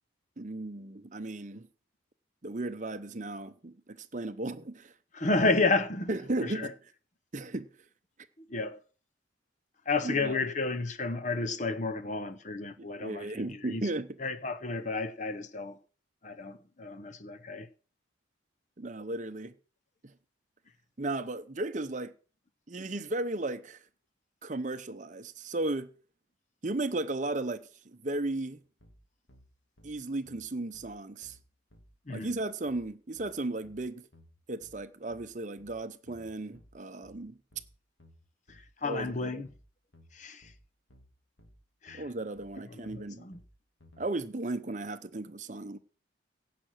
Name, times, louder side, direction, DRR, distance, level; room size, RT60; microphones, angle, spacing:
voice 1, 0.4-1.7 2.4-4.9 6.1-6.7 7.3-7.7 10.0-10.4 12.8-14.1 18.8-19.5 20.0-20.1 21.0-22.1 22.7-23.8 24.4-25.9 26.6-27.7 28.0-28.6 29.8-31.4 32.1-34.0 34.5-37.4 38.8-39.4 41.9-43.3 44.0-45.8, right 2 dB, 40° right, 0.8 m, -35 dB
voice 2, 5.1-6.1 6.4-6.7 8.4-8.8 9.9-13.8 14.2-15.8 16.2-17.7 32.1-32.3 38.5-39.5 40.1-40.5 41.8-42.0 42.7-43.4, left 3 dB, 40° left, 0.9 m, -31 dB
sound 1, 28.8-44.0, equal, 85° left, 2.8 m, -59 dB
16.5 x 5.9 x 6.2 m
head